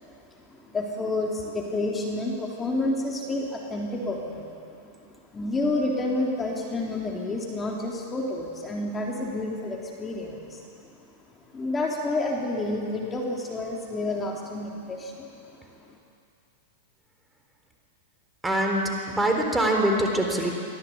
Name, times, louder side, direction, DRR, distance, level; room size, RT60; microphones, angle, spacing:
voice 1, 0.5-4.6 4.8-4.9 5.3-10.6 11.5-15.3, left 2 dB, 20° left, -2 dB, 3.5 m, -29 dB
voice 2, 18.4-20.5, right 1 dB, 10° right, 2 dB, 3.8 m, -24 dB
24.0 x 16.5 x 8.7 m, 2.5 s
hypercardioid pair, 105°, 0 cm